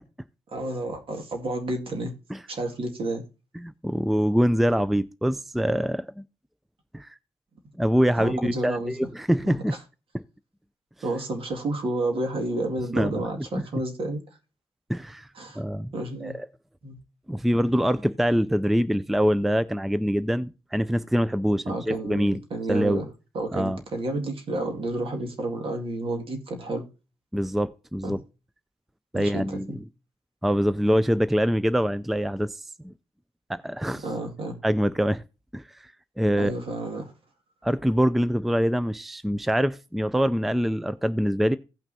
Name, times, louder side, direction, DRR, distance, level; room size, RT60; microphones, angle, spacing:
voice 1, 0.5-2.1 2.5-3.3 8.2-8.9 9.4-9.6 11.0-14.2 15.3-15.6 15.9-16.4 16.8-17.0 21.7-23.0 23.3-26.9 28.0-28.2 29.1-29.8 34.0-34.6 36.4-37.1, right 2 dB, 65° right, 2.1 m, -30 dB
voice 2, 3.6-6.2 6.9-7.1 7.8-9.8 12.9-13.2 14.9-15.3 15.6-15.9 16.2-16.5 17.3-22.4 22.7-23.0 23.5-23.8 27.3-28.2 29.1-29.7 30.4-32.6 32.8-32.9 33.5-34.0 34.6-35.2 35.5-35.6 36.2-36.5 37.6-41.6, equal, ahead, 0.4 m, -24 dB
16.5 x 5.8 x 2.7 m
cardioid pair, 85°, 10 cm